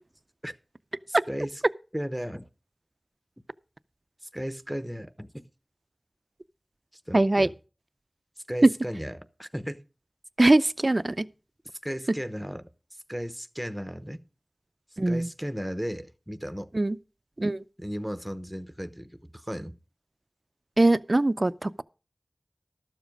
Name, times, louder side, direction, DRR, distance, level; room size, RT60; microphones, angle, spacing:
voice 1, 1.1-1.6 1.9-2.5 4.2-5.5 6.9-7.5 8.5-9.8 11.8-12.7 13.1-14.3 15.1-16.7 17.8-19.8, equal, 5° right, 0.8 m, -35 dB
voice 2, 7.1-7.5 8.6-8.7 10.4-11.2 15.0-15.3 16.7-17.0 17.4-17.6 20.8-21.8, right 2 dB, 45° right, 0.4 m, -21 dB
12.5 x 7.3 x 5.2 m
wide cardioid pair, 60°, 0 cm